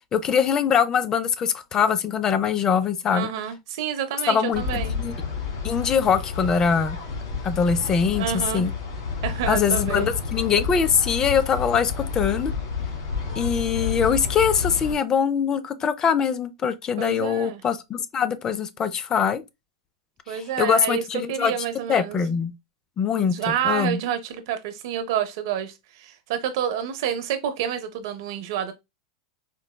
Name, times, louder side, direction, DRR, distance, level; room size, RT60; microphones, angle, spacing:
voice 1, 0.1-3.3 4.3-5.1 5.6-7.0 7.4-8.7 9.5-12.5 13.3-19.4 20.3-21.5 21.9-22.5 23.0-23.4 23.6-24.0, left 7 dB, 30° left, 0.4 m, -23 dB
voice 2, 3.1-5.0 8.1-8.6 9.2-10.1 17.0-17.6 20.3-22.2 23.1-28.7, right 9 dB, 65° right, 0.6 m, -29 dB
sound 1, 4.5-14.9, left 5 dB, 70° left, 1.7 m, -30 dB
4.5 x 2.0 x 2.2 m
hypercardioid pair, 110°, 2 cm